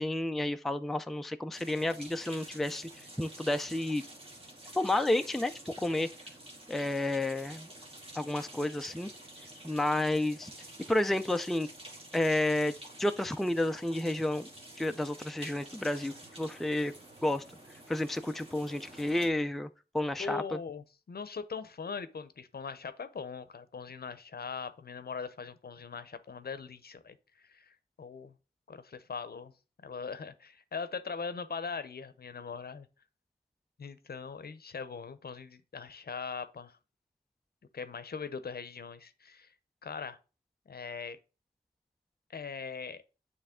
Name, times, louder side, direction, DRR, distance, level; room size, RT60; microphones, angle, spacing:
voice 1, 0.0-2.9 3.2-4.0 4.8-5.5 5.8-6.1 6.7-7.7 8.2-9.1 9.6-10.5 10.9-11.7 12.1-12.7 13.0-14.5 14.8-16.9 17.2-17.4 17.9-19.7 19.9-20.4, left 1 dB, ahead, 0.4 m, -30 dB
sound 1, 1.5-19.3, right 1 dB, 35° right, 2.1 m, -50 dB
voice 2, 20.2-28.3 28.7-29.5 29.8-32.9 33.8-36.8 37.7-39.5 39.8-40.2 40.7-41.2 42.3-43.0, left 5 dB, 65° left, 0.7 m, -41 dB
9.1 x 3.3 x 3.6 m
wide cardioid pair, 85°, 17 cm